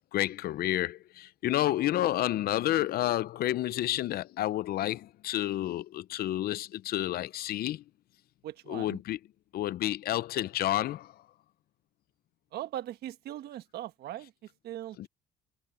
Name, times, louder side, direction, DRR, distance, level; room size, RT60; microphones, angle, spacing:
voice 1, 0.1-7.8 8.7-9.2 9.5-11.1 15.0-15.1, left 14 dB, 65° left, 0.7 m, -30 dB
voice 2, 8.4-9.0 12.5-15.1, right 12 dB, 70° right, 1.4 m, -40 dB
cardioid pair, 110°, 17 cm